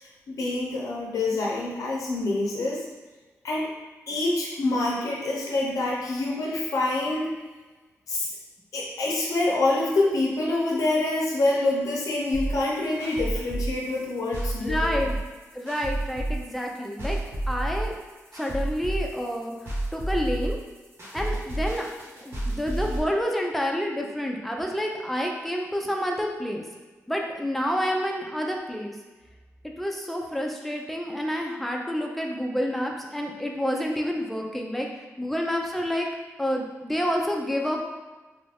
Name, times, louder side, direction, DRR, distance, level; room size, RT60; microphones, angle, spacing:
voice 1, 0.0-2.9 3.4-3.7 4.1-7.3 8.1-8.3 8.7-14.9, left 2 dB, 80° left, -3 dB, 0.6 m, -26 dB
sound 1, 12.3-23.0, right 1 dB, 50° right, 1.3 m, -30 dB
voice 2, 14.6-15.2 15.5-17.2 17.5-18.0 18.3-20.6 21.1-21.9 22.2-26.6 27.1-29.0 29.6-36.1 36.4-37.8, equal, ahead, 0 dB, 0.5 m, -29 dB
3.1 x 2.4 x 3.4 m, 1.2 s
cardioid pair, 85°, 6 cm